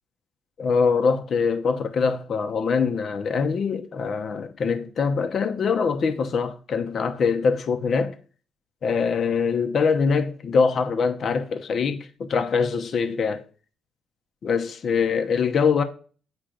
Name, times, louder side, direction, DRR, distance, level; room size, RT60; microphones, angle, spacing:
voice 1, 0.6-8.2 8.8-13.4 14.4-15.8, left 5 dB, 55° left, 0.9 m, -23 dB
8.7 x 3.2 x 6.3 m
cardioid pair, 90°, 0 cm